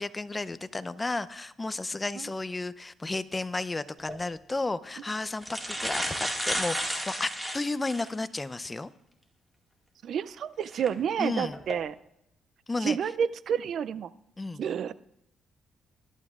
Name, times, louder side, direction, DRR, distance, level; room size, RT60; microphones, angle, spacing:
voice 1, 0.0-8.9 11.2-11.6 12.7-13.0 14.4-14.6, left 2 dB, 20° left, 15 dB, 0.5 m, -33 dB
sound 1, 4.0-4.2 5.0-5.1 5.3-8.1 8.7-8.8 10.7-10.9 11.5-11.7, equal, 5° right, 1.9 m, -32 dB
voice 2, 10.0-11.9 12.8-14.1 14.6-14.9, right 8 dB, 65° right, 18 dB, 0.4 m, -29 dB
18.5 x 12.0 x 2.4 m, 0.80 s
cardioid pair, 90°, 0 cm